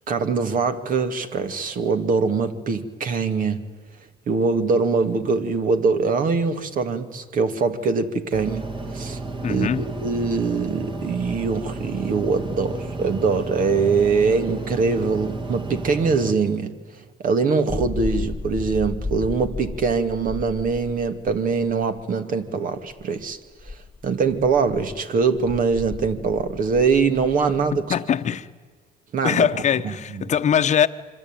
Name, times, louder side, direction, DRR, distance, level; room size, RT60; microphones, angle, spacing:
voice 1, 0.1-3.6 4.3-8.6 8.9-9.2 9.5-16.7 17.2-23.4 23.7-23.8 24.0-27.8 29.1-29.5 29.8-30.2, right 4 dB, 55° right, 2.3 m, -23 dB
sound 1, 8.3-16.3, right 2 dB, 30° right, 2.1 m, -32 dB
voice 2, 9.4-9.8 27.7-28.5 29.2-30.9, left 8 dB, 45° left, 1.1 m, -22 dB
sound 2, 17.7-22.0 22.9-23.0 23.6-28.0, left 3 dB, 10° left, 1.1 m, -34 dB
26.0 x 25.0 x 9.1 m
cardioid pair, 110°, 17 cm